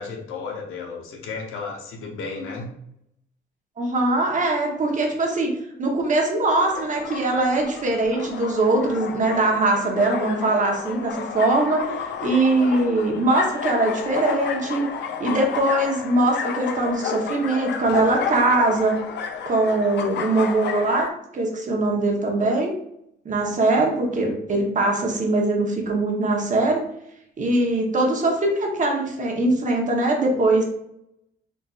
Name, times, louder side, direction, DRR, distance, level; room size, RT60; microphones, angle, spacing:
voice 1, 0.0-2.7, left 4 dB, 85° left, 1 dB, 0.9 m, -33 dB
voice 2, 3.8-5.5 5.8-11.9 12.2-14.9 15.2-19.0 19.5-22.7 23.2-26.8 27.4-30.6, right 2 dB, 40° right, 1 dB, 0.9 m, -21 dB
sound 1, 6.4-21.1, left 6 dB, 60° left, 0.4 m, -31 dB
3.9 x 2.5 x 2.3 m, 0.76 s
cardioid pair, 90°, 20 cm